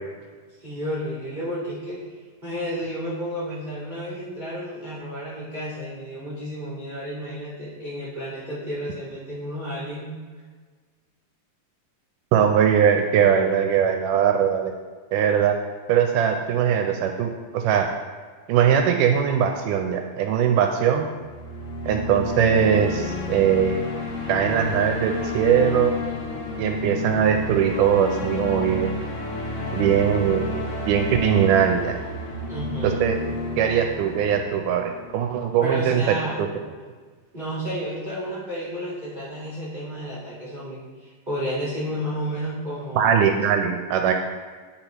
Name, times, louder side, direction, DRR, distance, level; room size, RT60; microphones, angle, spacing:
voice 1, 0.6-2.0 2.4-10.1 32.5-33.0 35.6-36.4 37.3-43.1, equal, 45° right, -9 dB, 0.5 m, -31 dB
voice 2, 12.3-14.7 15.1-15.6 15.9-17.9 18.5-21.1 21.9-23.9 24.3-25.9 26.6-29.0 29.7-32.0 32.8-33.2 33.6-36.0 36.4-36.5 43.0-44.1, right 8 dB, 80° right, 4 dB, 2.0 m, -21 dB
sound 1, 21.2-35.4, left 2 dB, 75° left, 2.7 m, -31 dB
10.5 x 4.2 x 2.9 m, 1.5 s
omnidirectional pair, 4.0 m